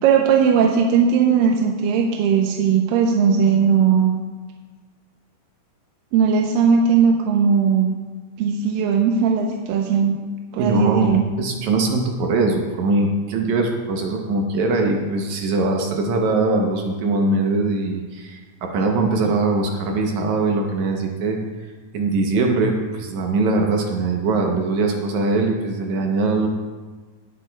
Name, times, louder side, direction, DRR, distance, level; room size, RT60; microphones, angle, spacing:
voice 1, 0.0-4.2 6.1-7.9 8.4-10.2 10.5-11.3, right 6 dB, 85° right, 1 dB, 2.4 m, -18 dB
voice 2, 10.6-21.4 21.9-26.5, right 3 dB, 70° right, 2 dB, 2.0 m, -21 dB
17.5 x 8.2 x 2.3 m, 1.4 s
omnidirectional pair, 4.0 m